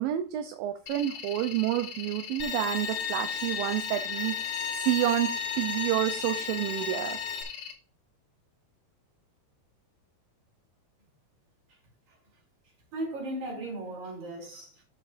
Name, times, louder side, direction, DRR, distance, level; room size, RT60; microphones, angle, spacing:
voice 1, 0.0-5.3 5.6-7.2, right 13 dB, 75° right, 2.3 m, -29 dB
sound 1, 0.9-7.7, left 8 dB, 70° left, 2.8 m, -41 dB
Bowed string instrument, 2.4-7.4, left 6 dB, 90° left, 4.5 m, -34 dB
voice 2, 12.9-14.8, right 1 dB, 45° right, 5.3 m, -37 dB
14.0 x 6.4 x 2.6 m
omnidirectional pair, 4.4 m